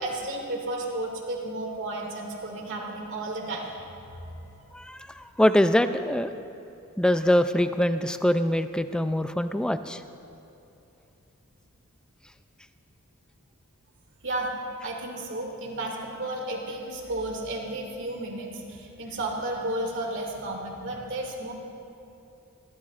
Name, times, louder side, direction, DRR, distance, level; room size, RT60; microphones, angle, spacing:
voice 1, 0.0-3.8 4.1-4.7 14.2-14.5 14.8-21.5, right 1 dB, 55° right, -1 dB, 2.4 m, -33 dB
voice 2, 4.7-6.3 7.0-10.0, left 1 dB, 5° left, 10 dB, 0.3 m, -23 dB
22.5 x 16.5 x 2.5 m, 2.8 s
head